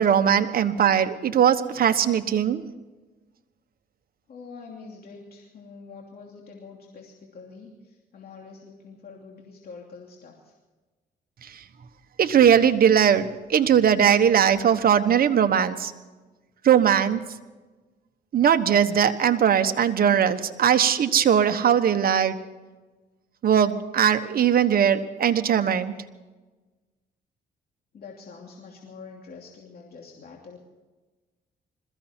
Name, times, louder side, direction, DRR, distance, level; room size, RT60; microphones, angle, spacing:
voice 1, 0.0-2.6 11.4-11.6 12.2-15.9 16.6-17.2 18.3-22.4 23.4-25.9, right 8 dB, 55° right, 9 dB, 1.3 m, -20 dB
voice 2, 4.3-10.5 27.9-30.6, left 4 dB, 60° left, 0 dB, 2.9 m, -45 dB
21.5 x 14.5 x 4.5 m, 1.2 s
cardioid pair, 80°, 18 cm